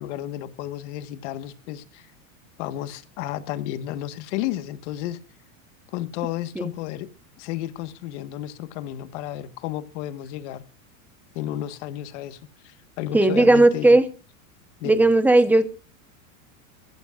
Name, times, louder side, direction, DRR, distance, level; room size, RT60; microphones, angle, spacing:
voice 1, 0.0-2.1 2.6-5.2 5.9-7.1 7.4-10.6 11.3-14.0 14.8-15.0, left 13 dB, 55° left, 11 dB, 1.6 m, -32 dB
voice 2, 13.1-14.1 14.8-15.7, right 2 dB, 5° right, 10 dB, 1.0 m, -16 dB
22.5 x 15.5 x 2.5 m, 0.33 s
supercardioid pair, 155°, 43 cm